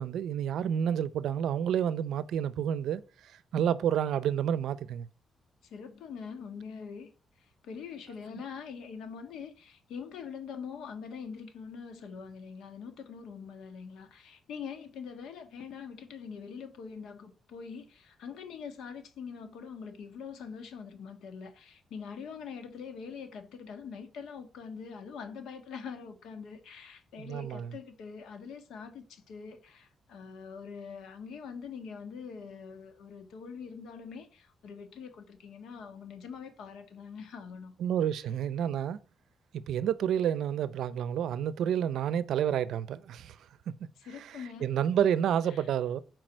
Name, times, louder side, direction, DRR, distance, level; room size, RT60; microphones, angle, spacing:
voice 1, 0.0-5.1 27.2-27.8 37.8-39.0 39.5-43.4 43.7-43.9 44.6-46.0, right 9 dB, 75° right, 0.6 m, -29 dB
voice 2, 5.6-7.1 7.4-37.7 44.0-44.7 45.5-45.7, left 6 dB, 85° left, 1.5 m, -44 dB
7.7 x 4.7 x 6.3 m
cardioid pair, 145°, 0 cm